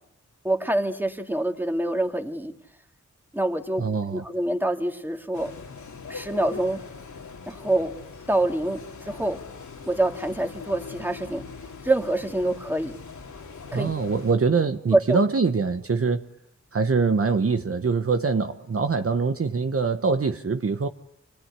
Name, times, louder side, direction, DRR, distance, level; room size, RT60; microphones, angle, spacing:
voice 1, 0.4-2.5 3.3-3.8 4.1-5.5 6.1-6.8 7.5-7.9 8.3-9.4 9.9-11.4 11.8-13.0 13.7-13.9 14.9-15.2, right 1 dB, 5° right, 4 dB, 2.6 m, -25 dB
voice 2, 3.8-4.2 13.7-16.3 16.7-20.9, right 4 dB, 50° right, 7 dB, 1.1 m, -24 dB
sound 1, 5.3-14.3, left 4 dB, 90° left, 2.7 m, -41 dB
25.5 x 19.0 x 9.8 m, 0.82 s
cardioid pair, 60°, 29 cm